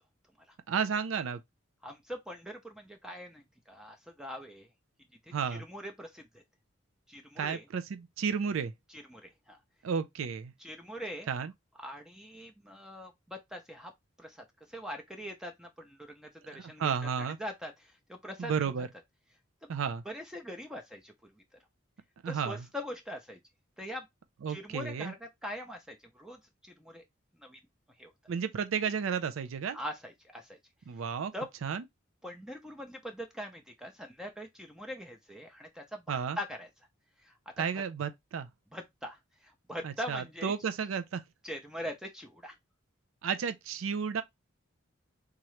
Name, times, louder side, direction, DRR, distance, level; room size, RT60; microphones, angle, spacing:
voice 1, 0.7-1.4 5.3-5.6 7.4-8.7 9.8-10.5 11.3-11.5 16.5-17.4 18.4-18.9 19.7-20.0 22.2-22.6 24.4-25.1 28.3-29.8 30.9-31.3 31.6-31.8 36.1-36.4 37.6-38.5 39.8-41.2 43.2-44.2, right 6 dB, 80° right, 0.4 m, -32 dB
voice 2, 1.8-4.7 5.3-6.4 7.1-7.6 8.9-9.6 10.6-11.3 11.8-13.9 14.2-16.9 17.2-18.9 20.1-21.3 22.3-23.4 23.8-24.1 24.5-27.0 27.4-27.6 28.0-28.1 29.7-30.6 31.3-31.5 32.2-36.7 37.2-37.8 38.7-40.5 41.4-42.6, equal, 5° right, 0.5 m, -42 dB
3.6 x 2.9 x 3.1 m
head